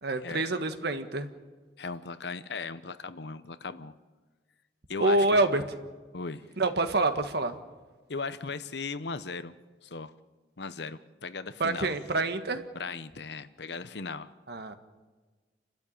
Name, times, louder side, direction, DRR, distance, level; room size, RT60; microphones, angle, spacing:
voice 1, 0.0-1.3 5.0-5.6 6.6-7.6 11.6-12.6 14.5-14.8, right 2 dB, 65° right, 8 dB, 1.5 m, -26 dB
voice 2, 1.8-4.0 4.9-5.4 6.1-6.5 8.1-9.5 9.8-10.1 10.6-11.9 12.7-14.3, left 4 dB, 70° left, 13 dB, 0.9 m, -37 dB
29.0 x 13.0 x 8.7 m, 1.3 s
head